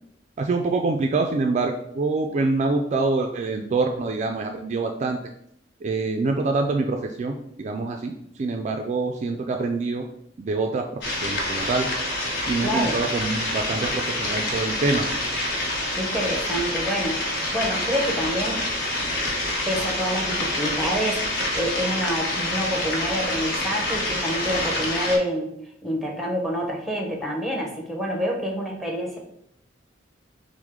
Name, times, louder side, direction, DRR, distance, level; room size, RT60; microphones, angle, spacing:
voice 1, 0.4-5.2 5.8-10.1 10.4-11.9 12.5-15.1, right 3 dB, 40° right, 4 dB, 0.3 m, -25 dB
sound 1, 11.0-25.2, left 1 dB, 65° left, 0.9 m, -27 dB
voice 2, 12.6-13.0 16.0-17.2 17.5-18.6 19.7-25.5 25.8-29.2, equal, ahead, 0 dB, 0.8 m, -27 dB
6.0 x 2.1 x 3.6 m, 0.74 s
head